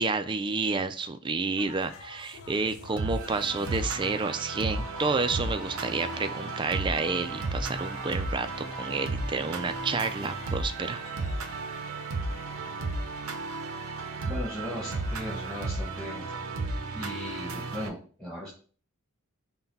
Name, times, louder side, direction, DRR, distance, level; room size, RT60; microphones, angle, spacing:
voice 1, 0.0-11.0, right 4 dB, 20° right, 9 dB, 0.3 m, -30 dB
sound 1, 1.6-16.0, left 3 dB, 90° left, 0.8 m, -48 dB
sound 2, 3.0-17.9, right 3 dB, 80° right, 0.7 m, -34 dB
voice 2, 14.3-16.2 16.9-18.5, left 1 dB, 5° left, -6 dB, 1.1 m, -37 dB
5.8 x 2.2 x 4.0 m, 0.41 s
head